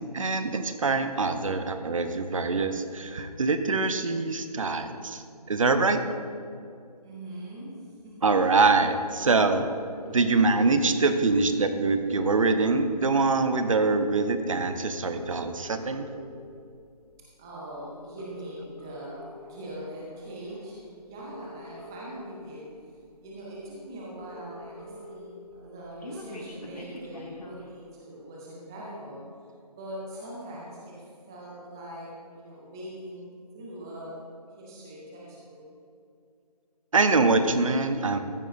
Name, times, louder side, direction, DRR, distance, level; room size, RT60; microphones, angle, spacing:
voice 1, 0.0-5.2 5.5-6.0 8.2-9.7 10.1-16.0 36.9-38.2, right 3 dB, 55° right, 8 dB, 0.8 m, -24 dB
voice 2, 7.0-7.8 8.0-8.3 17.4-22.6 23.2-29.2 29.7-33.3 33.5-34.1 34.6-35.6, right 1 dB, 5° right, -5 dB, 0.5 m, -41 dB
sound 1, 9.2-10.2 11.4-11.5 11.7-11.8 12.0-13.5 14.0-14.2 15.0-16.2 16.9-17.1 18.0-19.2 20.4-20.5 21.0-22.2 22.9-23.0 23.3-23.4 23.6-23.7 23.9-25.2 25.5-27.7, equal, 65° left, 1.7 m, -44 dB
14.0 x 8.9 x 2.6 m, 2.4 s
figure-of-eight pair, 160°, 21 cm